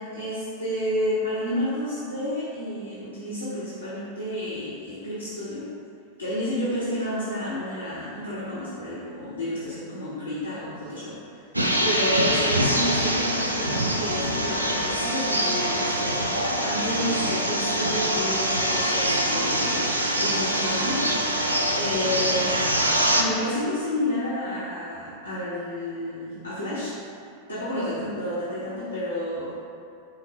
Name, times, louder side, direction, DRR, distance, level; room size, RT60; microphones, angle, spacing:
voice 1, 0.0-5.7 6.2-11.4 11.8-19.9 20.2-21.1 21.7-22.6 23.1-27.0 27.5-29.6, left 1 dB, 85° left, -10 dB, 1.1 m, -30 dB
sound 1, 11.5-23.2, equal, 85° right, 0.4 m, -24 dB
5.7 x 2.1 x 4.1 m, 2.6 s
figure-of-eight pair, 90°, 0 cm